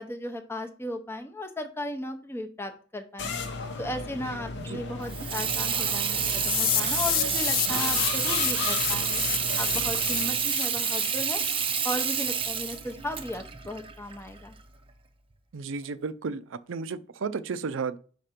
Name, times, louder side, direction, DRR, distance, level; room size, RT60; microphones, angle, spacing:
voice 1, 0.0-3.4 3.8-9.2 9.6-14.5, left 1 dB, 15° left, 0.7 m, -36 dB
sound 1, 3.2-10.6, left 4 dB, 65° left, 0.9 m, -35 dB
Water tap faucet / Sink (filling or washing), 5.0-14.6, right 7 dB, 30° right, 0.6 m, -29 dB
sound 2, 6.4-12.4, left 14 dB, 45° left, 0.3 m, -31 dB
voice 2, 15.5-18.0, right 5 dB, 75° right, 0.5 m, -33 dB
5.8 x 5.0 x 4.3 m
head